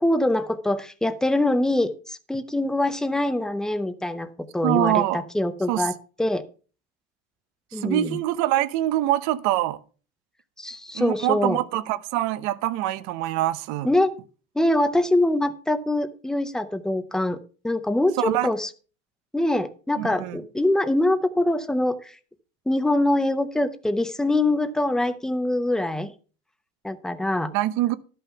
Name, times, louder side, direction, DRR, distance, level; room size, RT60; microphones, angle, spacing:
voice 1, 0.0-5.9 6.2-6.4 7.7-8.2 10.6-11.6 13.8-14.1 14.6-17.4 17.6-18.7 19.3-22.1 22.7-26.1 26.8-27.5, left 1 dB, ahead, 0.5 m, -24 dB
voice 2, 4.6-5.2 5.7-5.9 7.7-9.8 10.9-13.9 18.2-18.5 20.0-20.4 27.5-28.0, right 14 dB, 65° right, 0.8 m, -24 dB
12.5 x 5.6 x 5.6 m
cardioid pair, 165°, 30 cm